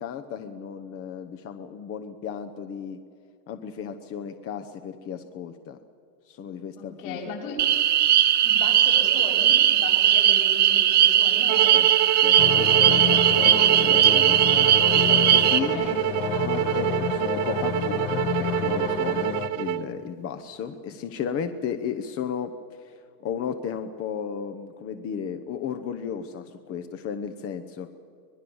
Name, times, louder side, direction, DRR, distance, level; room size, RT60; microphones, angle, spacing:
voice 1, 0.0-3.0 3.5-5.8 6.3-7.3 11.6-11.9 12.2-15.8 16.4-27.9, left 7 dB, 30° left, 7 dB, 1.0 m, -34 dB
voice 2, 6.7-7.7 8.4-11.8 15.5-16.0, left 3 dB, 65° left, 0 dB, 7.4 m, -37 dB
sound 1, 7.6-15.6, right 11 dB, 20° right, 0.6 m, -19 dB
sound 2, 11.5-19.8, right 15 dB, 55° right, 1.3 m, -27 dB
sound 3, 12.4-19.5, left 9 dB, 50° left, 1.9 m, -30 dB
25.0 x 20.5 x 7.2 m, 2.3 s
supercardioid pair, 140°, 47 cm